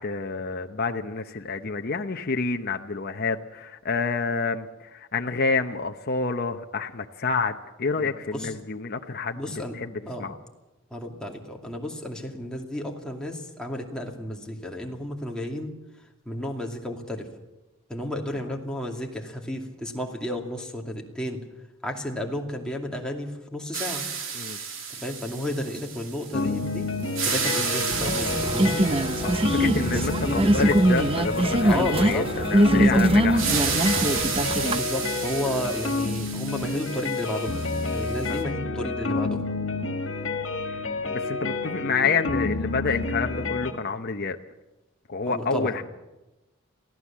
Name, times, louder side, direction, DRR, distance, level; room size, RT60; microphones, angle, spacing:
voice 1, 0.0-9.4 9.7-10.4 24.3-24.6 29.2-33.4 38.3-38.4 41.1-44.4 45.1-45.8, left 4 dB, 50° left, 5 dB, 0.9 m, -28 dB
voice 2, 8.0-8.5 9.4-9.7 10.1-10.3 10.9-15.7 16.3-17.3 17.9-21.4 21.8-24.0 25.0-26.9 27.2-28.9 29.6-30.7 31.6-32.3 32.7-33.0 34.7-37.6 37.9-39.4 45.3-45.8, left 1 dB, 5° left, 0 dB, 2.5 m, -32 dB
sound 1, 23.7-26.7 27.0-31.8 33.4-38.4, right 6 dB, 70° right, 3.0 m, -32 dB
sound 2, 26.3-43.7, left 3 dB, 65° left, 2.2 m, -29 dB
sound 3, 27.9-34.8, right 1 dB, 25° right, 0.7 m, -22 dB
23.0 x 15.5 x 7.4 m, 1.0 s
head